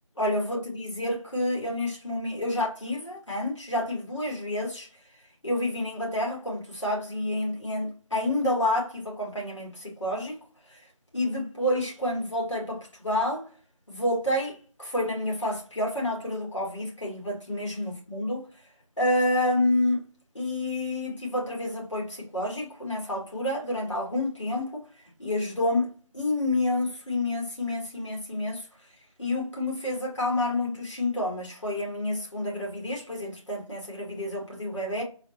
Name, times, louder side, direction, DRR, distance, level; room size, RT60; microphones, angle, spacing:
voice 1, 0.2-4.9 5.4-10.4 10.7-10.8 11.1-13.5 13.9-18.4 19.0-20.0 20.3-24.8 25.2-28.7 29.2-35.0, left 1 dB, 60° left, 1.8 m, -29 dB
4.1 x 2.0 x 4.1 m
figure-of-eight pair, 170°, 17 cm